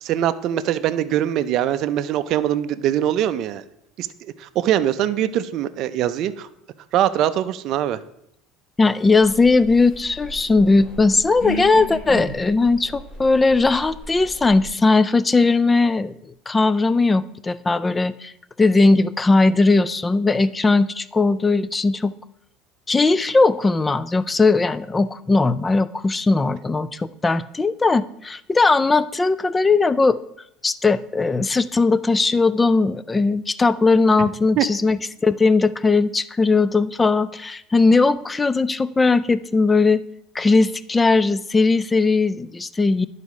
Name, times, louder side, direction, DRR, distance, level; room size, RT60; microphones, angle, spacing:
voice 1, 0.0-3.6 4.0-6.5 6.9-8.0 34.6-34.7, right 11 dB, 55° right, 12 dB, 0.4 m, -22 dB
voice 2, 8.8-16.1 16.5-18.3 18.6-22.1 22.9-30.2 30.6-40.0 40.3-43.0, left 3 dB, 15° left, 16 dB, 0.3 m, -18 dB
sound 1, 9.2-14.7, left 1 dB, 45° left, 1.8 m, -35 dB
10.5 x 4.1 x 4.7 m, 0.77 s
supercardioid pair, 120°, 0 cm